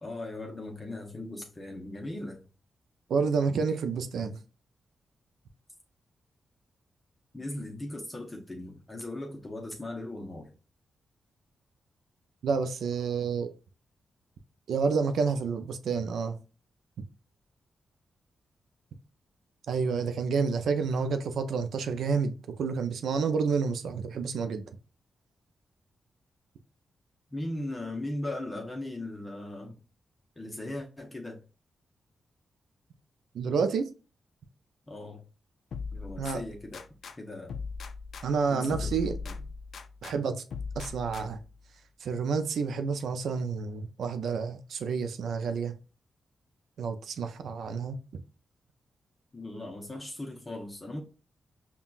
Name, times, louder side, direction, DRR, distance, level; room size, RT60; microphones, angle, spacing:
voice 1, 0.0-2.5 7.3-10.5 27.3-29.8 30.4-31.4 34.9-35.2 35.9-36.8 37.2-37.5 38.5-38.8 39.2-39.3 49.3-51.0, left 1 dB, 15° left, 0.8 m, -38 dB
voice 2, 3.1-4.4 12.4-13.5 14.7-16.4 19.7-24.6 33.3-33.9 36.2-36.4 38.2-39.1 40.0-40.4 40.8-41.4 42.0-45.7 46.8-48.0, right 5 dB, 80° right, 0.5 m, -29 dB
sound 1, 35.7-37.2 37.5-40.2 40.5-41.5, left 4 dB, 70° left, 0.3 m, -39 dB
5.5 x 2.3 x 2.4 m
cardioid pair, 105°, 0 cm